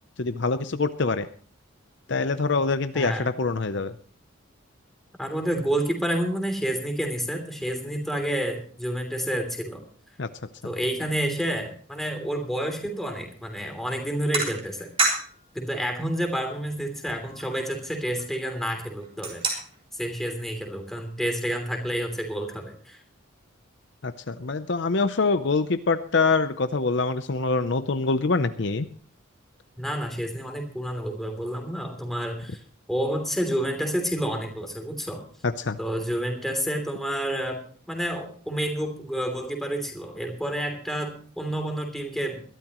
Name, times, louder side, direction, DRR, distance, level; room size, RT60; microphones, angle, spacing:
voice 1, 0.2-1.3 2.1-3.9 10.2-10.3 24.0-28.9 35.4-35.8, left 3 dB, 60° left, 11 dB, 0.7 m, -25 dB
voice 2, 2.9-3.2 5.2-9.8 10.6-14.9 15.5-19.4 19.9-23.0 29.8-32.6 32.9-35.2 35.8-42.4, right 1 dB, ahead, 3 dB, 3.0 m, -29 dB
sound 1, 13.4-13.7 14.3-15.4 15.8-15.9 16.5-16.6 16.9-18.5 19.0-19.9, right 3 dB, 25° right, 3.6 m, -29 dB
22.0 x 12.5 x 3.0 m, 0.43 s
head